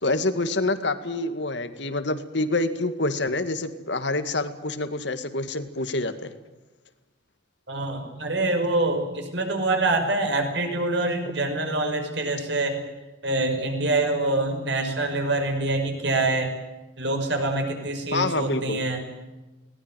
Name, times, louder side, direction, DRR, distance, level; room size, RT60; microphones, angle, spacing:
voice 1, 0.0-6.4 18.1-18.8, left 2 dB, 65° left, 10 dB, 2.1 m, -27 dB
voice 2, 7.7-12.8 13.2-16.5 17.0-19.0, right 2 dB, 65° right, 5 dB, 5.8 m, -25 dB
21.0 x 19.0 x 9.3 m, 1.1 s
head